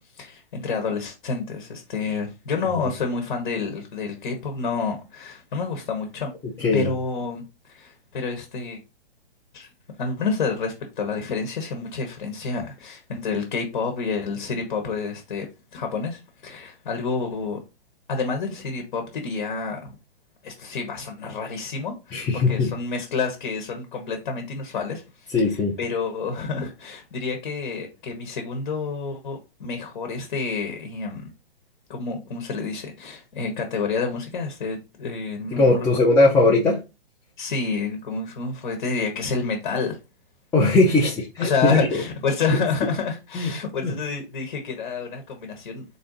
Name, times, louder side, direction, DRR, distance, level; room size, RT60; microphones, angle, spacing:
voice 1, 0.1-6.3 6.7-8.8 9.5-9.7 10.0-15.5 15.7-17.6 18.1-20.0 20.4-31.3 31.9-35.9 37.4-40.0 41.4-45.8, left 4 dB, 55° left, 1.2 m, -29 dB
voice 2, 6.6-6.9 22.1-22.7 25.3-25.7 35.5-36.8 40.5-41.9 43.3-43.5 43.8-43.9, left 2 dB, 10° left, 0.5 m, -19 dB
4.0 x 2.7 x 3.8 m
hypercardioid pair, 130°, 29 cm